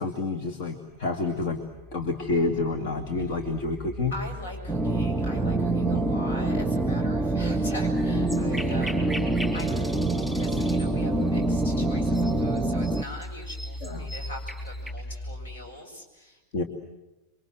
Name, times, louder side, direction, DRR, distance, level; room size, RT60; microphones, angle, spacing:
voice 1, 0.0-1.6 1.9-4.1 5.8-6.1 13.8-14.1 16.5-16.6, left 3 dB, 45° left, 6 dB, 2.4 m, -29 dB
sound 1, 0.9-15.8, left 2 dB, 25° left, 1.3 m, -40 dB
voice 2, 4.1-9.9 10.3-16.4, equal, 65° left, 4 dB, 7.6 m, -42 dB
sound 2, 4.7-13.0, right 2 dB, 15° right, 1.0 m, -25 dB
sound 3, 7.9-14.9, equal, 10° left, 5.4 m, -41 dB
28.5 x 24.5 x 7.9 m, 1.0 s
figure-of-eight pair, 90°, 0 cm